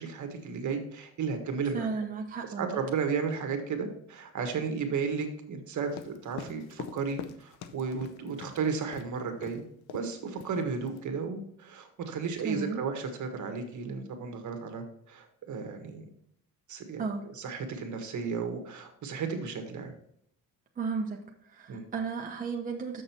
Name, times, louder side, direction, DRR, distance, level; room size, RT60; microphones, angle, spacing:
voice 1, 0.0-1.9 2.6-9.6 9.9-16.0 16.7-17.0 17.4-19.9 21.7-21.9, right 5 dB, 55° right, 5 dB, 1.5 m, -34 dB
voice 2, 1.7-2.8 12.4-12.8 17.0-17.2 20.8-23.0, right 5 dB, 25° right, 0 dB, 0.9 m, -34 dB
sound 1, 5.9-8.6 8.9-9.1 9.4-9.6 9.9-10.1 10.4-11.0, left 7 dB, 90° left, 0.8 m, -43 dB
6.8 x 6.5 x 4.4 m, 0.71 s
cardioid pair, 125°, 36 cm